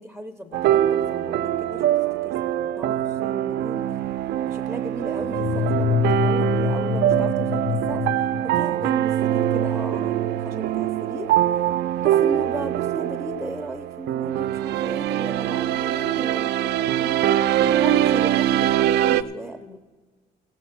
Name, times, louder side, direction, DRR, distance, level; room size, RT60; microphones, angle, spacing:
voice 1, 0.0-1.8 2.2-4.0 4.5-8.0 8.4-11.3 12.0-19.8, right 1 dB, ahead, 6 dB, 0.7 m, -36 dB
sound 1, 0.5-19.2, right 12 dB, 75° right, 0.4 m, -23 dB
sound 2, 5.2-9.3, left 9 dB, 50° left, 0.4 m, -26 dB
16.0 x 7.4 x 5.9 m, 1.3 s
cardioid pair, 90°, 17 cm